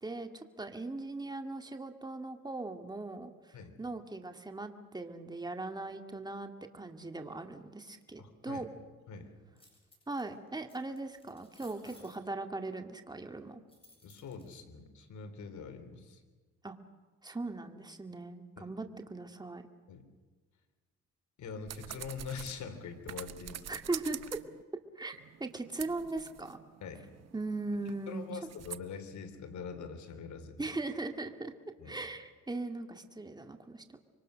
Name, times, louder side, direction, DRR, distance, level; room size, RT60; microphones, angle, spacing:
voice 1, 0.0-8.7 10.1-13.6 16.6-16.8 17.2-19.6 23.7-24.4 25.0-26.6 27.3-28.3 30.6-31.5 31.8-33.8, right 2 dB, 15° right, 5 dB, 2.3 m, -39 dB
voice 2, 8.2-8.7 9.1-9.3 14.0-16.2 18.6-18.7 19.9-20.0 21.4-23.7 26.8-27.0 28.1-30.7 31.8-32.0, left 6 dB, 70° left, 8 dB, 3.6 m, -44 dB
sound 1, 9.6-10.3 10.7-12.2 13.7-14.5, left 1 dB, 20° left, 7.7 m, -59 dB
sound 2, 21.7-24.6 25.1-28.8, right 10 dB, 55° right, 1.0 m, -46 dB
26.0 x 24.0 x 6.5 m, 1.4 s
cardioid pair, 90°, 30 cm